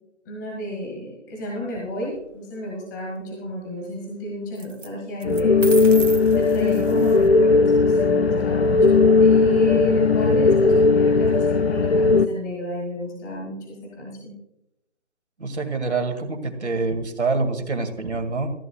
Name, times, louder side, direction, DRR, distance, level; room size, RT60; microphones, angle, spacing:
voice 1, 0.2-5.6 6.3-14.3, left 1 dB, 15° left, -3 dB, 1.6 m, -31 dB
sound 1, 1.7-2.2 4.5-4.9 5.2-7.3, right 4 dB, 90° right, 1.4 m, -35 dB
sound 2, 5.3-12.3, left 4 dB, 55° left, 0.6 m, -17 dB
voice 2, 15.4-18.5, right 3 dB, 65° right, 7 dB, 2.2 m, -26 dB
18.0 x 14.0 x 2.3 m, 0.86 s
figure-of-eight pair, 160°, 37 cm